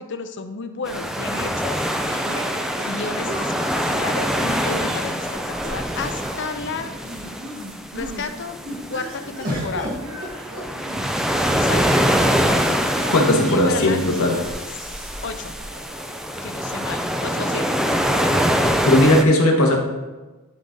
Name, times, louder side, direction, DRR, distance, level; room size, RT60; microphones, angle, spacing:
voice 1, 0.0-1.9 2.8-6.9 7.9-8.6 8.9-9.9 11.5-11.9 13.5-14.0 15.2-15.5 16.4-17.8 18.1-18.4, left 4 dB, 55° left, 8 dB, 0.6 m, -32 dB
sound 1, 0.8-19.2, equal, ahead, 0.3 m, -24 dB
sound 2, 2.0-4.1 4.6-6.5 6.7-8.3 8.6-16.6 17.4-18.8, right 1 dB, 55° right, 1.4 m, -37 dB
sound 3, 4.2-5.7 6.5-6.6 6.9-7.5 9.4-11.3 12.2-12.9, equal, 40° right, 1.6 m, -35 dB
voice 2, 13.1-14.5 18.8-19.8, left 1 dB, 75° left, 0 dB, 1.5 m, -17 dB
11.0 x 3.8 x 3.9 m, 1.2 s
head